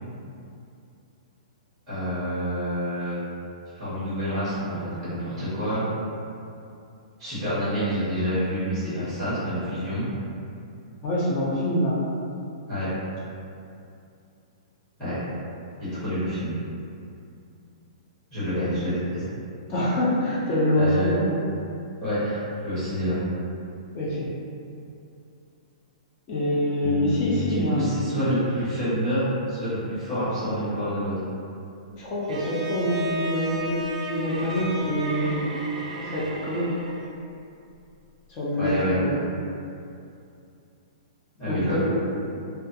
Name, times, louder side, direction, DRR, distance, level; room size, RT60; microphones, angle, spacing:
voice 1, 1.9-3.2 3.7-5.8 7.2-10.1 12.7-12.9 15.0-15.2 15.8-16.5 18.3-19.2 20.7-21.1 22.0-23.3 26.8-31.2 38.6-39.2 41.4-41.8, equal, 5° left, -16 dB, 1.0 m, -28 dB
voice 2, 11.0-12.0 19.7-21.2 23.9-24.3 26.3-28.2 32.0-35.4 36.0-36.7 38.3-39.1 41.5-42.0, left 1 dB, 20° left, -7 dB, 0.4 m, -25 dB
Bowed string instrument, 32.3-37.1, right 1 dB, 85° right, 0.4 m, -33 dB
2.4 x 2.2 x 2.6 m, 2.6 s
hypercardioid pair, 175°, 4 cm